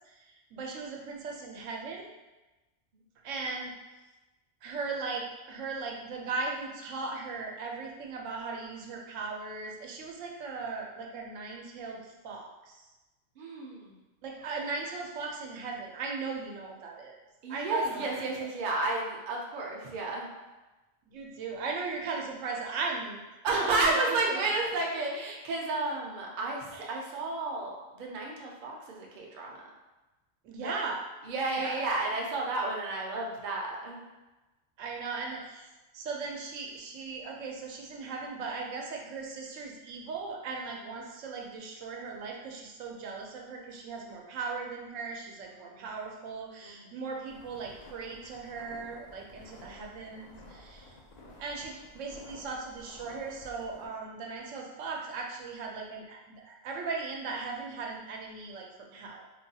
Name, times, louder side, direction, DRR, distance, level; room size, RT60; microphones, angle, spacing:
voice 1, 0.1-2.1 3.2-3.7 4.6-12.9 14.2-17.2 17.5-18.1 18.6-18.8 21.1-23.2 23.5-24.4 30.4-31.0 31.6-31.8 34.8-35.7 35.9-50.9 51.4-59.3, right 4 dB, 85° right, 0 dB, 0.9 m, -38 dB
voice 2, 13.4-14.0 17.4-20.3 23.4-29.6 30.6-30.7 31.2-34.0 45.4-45.9 46.6-46.9, right 2 dB, 50° right, -2 dB, 0.6 m, -32 dB
sound 1, 47.3-53.9, left 1 dB, 55° left, 0.4 m, -52 dB
3.9 x 2.3 x 2.7 m, 1.1 s
omnidirectional pair, 1.3 m